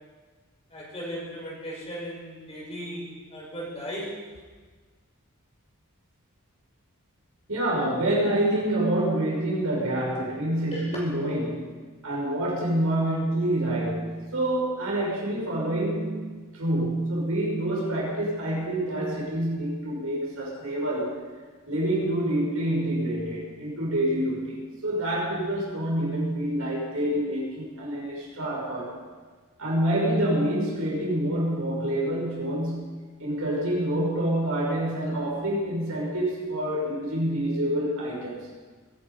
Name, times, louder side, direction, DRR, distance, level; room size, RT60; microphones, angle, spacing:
voice 1, 0.7-4.1 10.7-11.0, equal, 30° left, -4 dB, 5.8 m, -36 dB
voice 2, 7.5-11.7 12.0-21.2 21.7-29.0 29.6-38.5, right 1 dB, 80° right, -3 dB, 5.9 m, -27 dB
21.5 x 10.5 x 5.5 m, 1.4 s
head